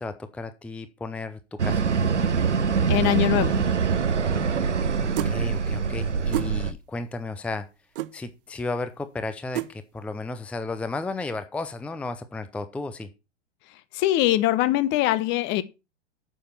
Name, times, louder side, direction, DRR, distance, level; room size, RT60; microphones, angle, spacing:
voice 1, 0.0-1.9 5.0-7.7 8.1-13.1, left 3 dB, 5° left, 0.6 m, -34 dB
sound 1, 1.6-6.7, right 5 dB, 85° right, 0.9 m, -24 dB
voice 2, 2.9-3.6 13.9-15.6, left 14 dB, 30° left, 0.9 m, -22 dB
sound 2, 5.2-5.4 6.3-6.5 8.0-8.1 9.6-9.7, right 15 dB, 50° right, 0.8 m, -28 dB
9.1 x 6.8 x 5.7 m
figure-of-eight pair, 100°, 35 cm